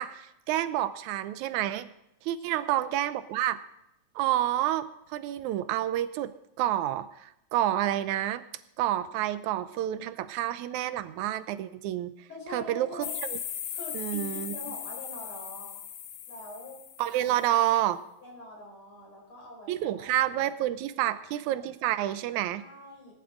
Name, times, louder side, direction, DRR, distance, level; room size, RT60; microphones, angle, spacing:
voice 1, 0.0-1.9 2.2-3.6 4.2-6.3 6.6-8.4 8.8-12.1 12.5-13.1 13.9-14.5 17.0-18.0 19.7-22.6, right 13 dB, 85° right, 13 dB, 2.1 m, -29 dB
voice 2, 12.3-13.2 13.7-15.8 16.3-16.8 17.3-17.4 18.2-20.1 20.9-21.3 22.5-23.1, left 2 dB, 45° left, -1 dB, 5.0 m, -44 dB
sound 1, 13.0-17.4, left 9 dB, 80° left, 2.5 m, -38 dB
19.5 x 10.5 x 3.7 m, 0.83 s
omnidirectional pair, 3.3 m